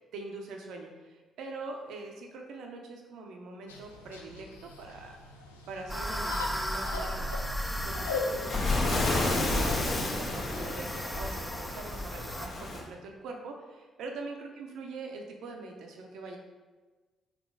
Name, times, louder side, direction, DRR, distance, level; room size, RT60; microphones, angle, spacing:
voice 1, 0.1-5.2 5.7-7.3 7.8-16.4, right 3 dB, 65° right, 2 dB, 0.6 m, -43 dB
sound 1, 3.7-10.8, left 3 dB, 85° left, 0.3 m, -40 dB
sound 2, 5.9-12.5, equal, 5° left, 0.4 m, -36 dB
Waves surf, 7.6-12.8, left 2 dB, 45° left, 0.8 m, -31 dB
4.0 x 3.0 x 3.5 m, 1.3 s
figure-of-eight pair, 45°, 0 cm